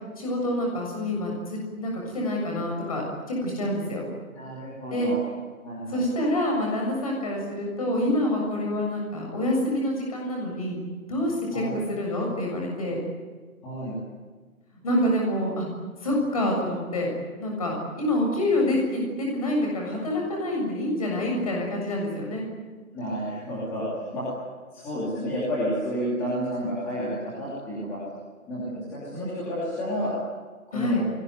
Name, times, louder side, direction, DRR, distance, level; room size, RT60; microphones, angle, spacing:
voice 1, 0.2-4.0 4.9-5.1 5.9-10.8 11.1-13.0 14.8-15.7 16.0-17.1 17.4-22.5 30.7-31.0, left 1 dB, 25° left, 0 dB, 7.1 m, -27 dB
voice 2, 4.3-5.2 5.6-6.0 11.5-11.8 13.6-14.0 22.9-24.3 24.7-28.0 28.5-30.1 30.7-31.1, equal, 5° left, -9 dB, 2.7 m, -30 dB
29.0 x 21.5 x 9.5 m, 1.4 s
hypercardioid pair, 180°, 42 cm